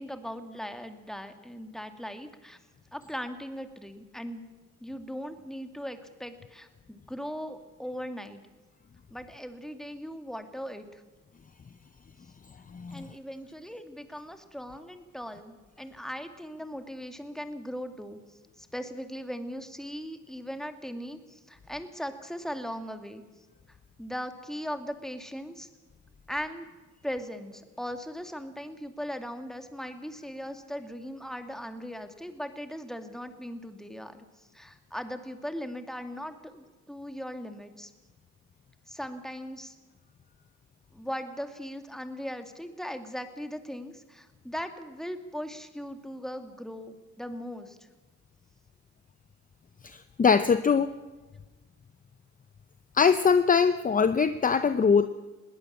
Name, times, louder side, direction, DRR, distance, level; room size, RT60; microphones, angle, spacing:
voice 1, 0.0-2.6 2.9-4.5 4.8-8.4 9.1-11.0 12.9-23.2 24.0-25.7 26.3-26.7 27.0-37.9 38.9-39.8 40.9-47.8, equal, ahead, 7 dB, 2.2 m, -39 dB
voice 2, 12.7-13.0 49.8-50.9 52.9-55.1, left 6 dB, 25° left, 12 dB, 0.8 m, -22 dB
21.0 x 18.0 x 7.3 m, 1.2 s
cardioid pair, 90°, 30 cm